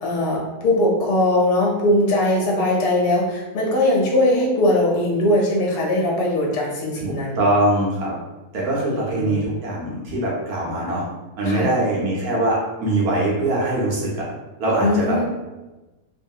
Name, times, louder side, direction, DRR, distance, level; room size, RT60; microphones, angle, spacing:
voice 1, 0.0-7.4 8.8-9.5 11.5-11.7 14.8-15.2, left 1 dB, 90° left, -2 dB, 1.2 m, -20 dB
voice 2, 7.0-8.1 8.5-11.0 11.4-14.2 14.6-15.2, right 1 dB, 75° right, -4 dB, 1.2 m, -22 dB
2.9 x 2.2 x 2.7 m, 1.1 s
omnidirectional pair, 1.7 m